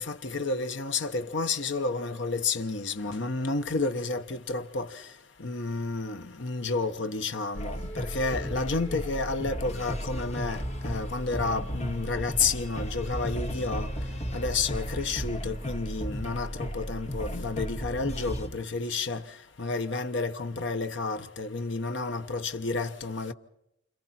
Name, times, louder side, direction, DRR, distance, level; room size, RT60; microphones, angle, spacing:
voice 1, 0.0-4.9 5.4-13.9 14.3-19.2 19.6-23.3, left 3 dB, 75° left, 1.0 m, -31 dB
sound 1, 7.5-18.5, equal, 35° left, 2.0 m, -34 dB
29.0 x 26.5 x 4.3 m
head